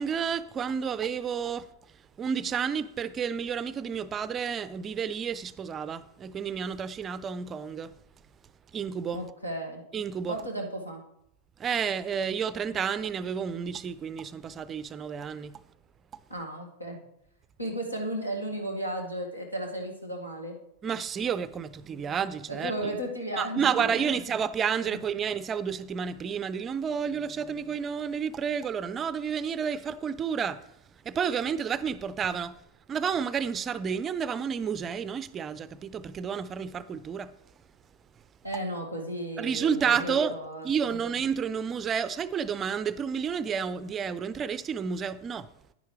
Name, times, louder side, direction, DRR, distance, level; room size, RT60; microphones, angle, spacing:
voice 1, 0.0-1.7 2.2-7.9 8.7-9.2 9.9-10.4 11.6-15.6 20.8-22.9 23.4-30.6 31.1-32.6 32.9-37.3 39.4-40.3 40.6-45.5, right 7 dB, 25° right, 0.4 m, -30 dB
voice 2, 9.1-9.8 10.3-11.0 16.3-17.0 17.6-20.6 22.5-24.1 38.4-41.0, right 1 dB, 85° left, 1.9 m, -34 dB
10.5 x 10.0 x 3.3 m
figure-of-eight pair, 90°, 0 cm